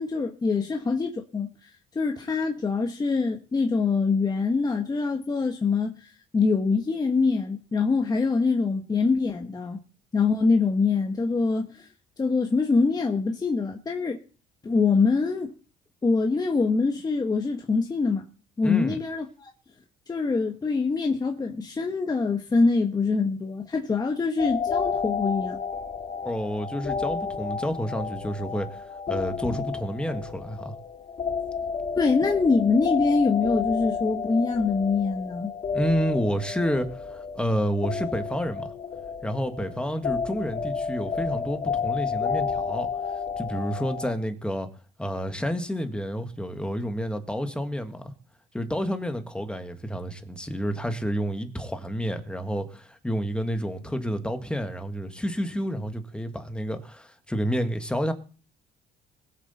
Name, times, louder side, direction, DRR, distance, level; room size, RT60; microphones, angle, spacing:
voice 1, 0.0-1.5 1.9-9.8 10.1-11.9 12.2-14.2 14.6-15.5 16.0-18.2 18.6-19.5 20.1-25.6 31.9-35.5, left 4 dB, 25° left, 1.4 m, -24 dB
voice 2, 18.6-19.0 26.2-30.7 35.7-38.7 39.2-42.9 43.4-44.7 45.0-48.1 48.5-58.1, equal, 5° left, 1.8 m, -29 dB
sound 1, 24.4-44.1, left 6 dB, 45° left, 2.2 m, -31 dB
21.0 x 7.5 x 4.3 m
cardioid pair, 110°, 17 cm